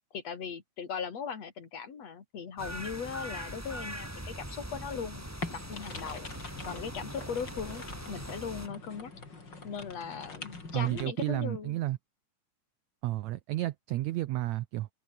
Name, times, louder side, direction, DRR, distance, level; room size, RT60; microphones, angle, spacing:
voice 1, 0.1-6.3 6.7-7.8 8.1-9.1 9.6-11.8, left 6 dB, 50° left, 4.0 m, -39 dB
sound 1, 2.6-8.7, right 1 dB, 5° right, 3.9 m, -41 dB
sound 2, 5.4-11.0, left 3 dB, 30° left, 5.0 m, -44 dB
voice 2, 10.7-12.0 13.0-14.9, right 16 dB, 75° right, 1.8 m, -31 dB
omnidirectional pair, 3.8 m